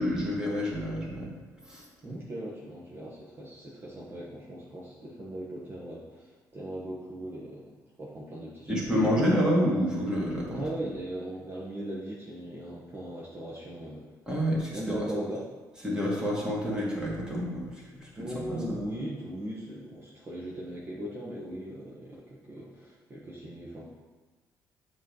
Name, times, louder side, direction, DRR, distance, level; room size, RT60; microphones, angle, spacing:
voice 1, 0.0-1.3 1.6-2.2 8.7-10.6 14.3-15.1 15.8-17.7 18.0-18.1 18.5-18.8, equal, 10° right, -5 dB, 2.1 m, -28 dB
voice 2, 2.0-9.1 10.5-14.1 14.7-15.5 18.2-23.9, right 1 dB, 35° right, -5 dB, 1.2 m, -39 dB
7.3 x 3.2 x 5.4 m, 1.3 s
cardioid pair, 100°, 7 cm